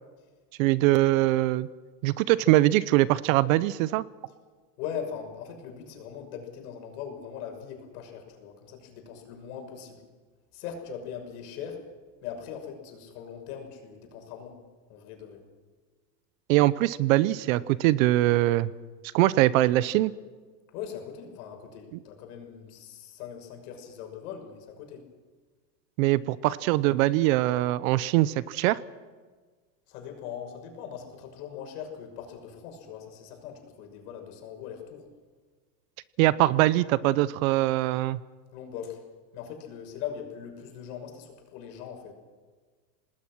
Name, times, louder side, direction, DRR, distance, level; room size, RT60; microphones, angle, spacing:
voice 1, 0.6-1.7 2.0-4.0 16.5-18.7 19.1-20.1 26.0-28.8 36.2-38.2, right 17 dB, 55° right, 18 dB, 0.8 m, -22 dB
voice 2, 4.8-10.0 10.5-11.8 12.2-14.6 14.9-15.4 20.7-25.0 29.9-35.0 38.5-39.0 39.3-42.1, left 8 dB, 60° left, 4 dB, 6.3 m, -40 dB
27.0 x 19.5 x 6.2 m, 1.4 s
supercardioid pair, 145°, 50 cm